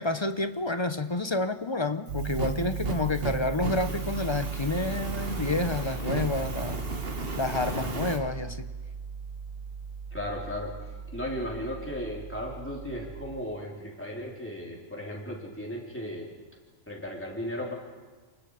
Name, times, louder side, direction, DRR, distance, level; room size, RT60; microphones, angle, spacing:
voice 1, 0.0-6.8 7.4-8.7, left 2 dB, 30° left, 10 dB, 0.6 m, -29 dB
Fire, 2.1-8.2, right 3 dB, 45° right, 1.9 m, -35 dB
Piano, 2.1-13.4, right 6 dB, 85° right, 1.5 m, -37 dB
voice 2, 10.1-10.7 11.1-16.3 16.9-17.7, left 1 dB, 10° left, -2 dB, 4.0 m, -35 dB
29.0 x 20.0 x 5.0 m, 1.3 s
omnidirectional pair, 1.4 m